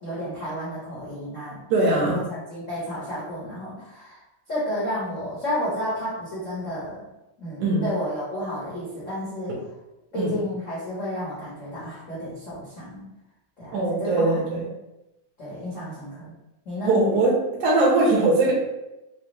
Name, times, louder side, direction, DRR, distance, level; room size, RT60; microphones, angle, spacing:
voice 1, 0.0-1.6 1.9-4.2 4.5-7.0 7.4-9.6 10.1-13.1 13.6-13.7 14.0-14.4 15.4-16.3 16.6-17.0, left 1 dB, 75° left, -9 dB, 0.7 m, -31 dB
voice 2, 1.7-2.2 7.6-7.9 10.2-10.4 13.7-14.7 16.8-18.5, right 2 dB, 80° right, -1 dB, 2.3 m, -21 dB
5.4 x 2.0 x 3.1 m, 0.95 s
omnidirectional pair, 3.5 m